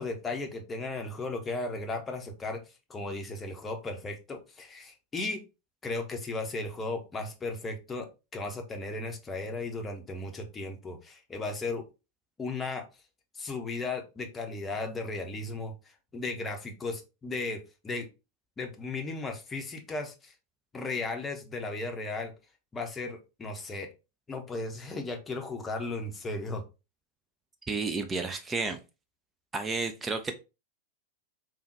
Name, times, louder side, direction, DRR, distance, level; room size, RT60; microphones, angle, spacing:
voice 1, 0.0-2.6 2.9-5.4 5.8-11.8 12.4-12.8 13.3-15.7 16.1-18.1 18.6-20.3 20.7-22.3 22.7-23.9 24.3-26.6, left 3 dB, 15° left, 4 dB, 0.6 m, -35 dB
voice 2, 27.7-28.8 29.5-30.4, right 4 dB, 15° right, 7 dB, 0.3 m, -31 dB
3.5 x 2.2 x 2.7 m, 0.28 s
figure-of-eight pair, 90°, 0 cm